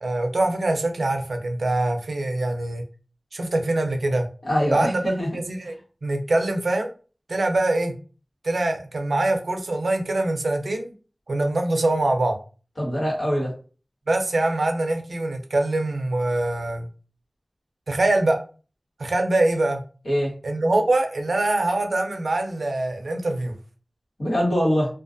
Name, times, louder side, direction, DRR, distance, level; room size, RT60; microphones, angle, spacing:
voice 1, 0.0-2.8 3.3-4.3 4.7-5.0 5.3-5.7 6.0-6.9 7.3-7.9 8.4-10.9 11.3-12.4 14.1-16.9 17.9-18.4 19.0-19.8 20.4-23.5, right 2 dB, 90° right, 5 dB, 0.4 m, -23 dB
voice 2, 4.4-5.3 12.8-13.5 20.0-20.3 24.2-24.9, equal, 75° left, -4 dB, 1.2 m, -23 dB
2.3 x 2.3 x 2.5 m, 0.37 s
wide cardioid pair, 65°, 0 cm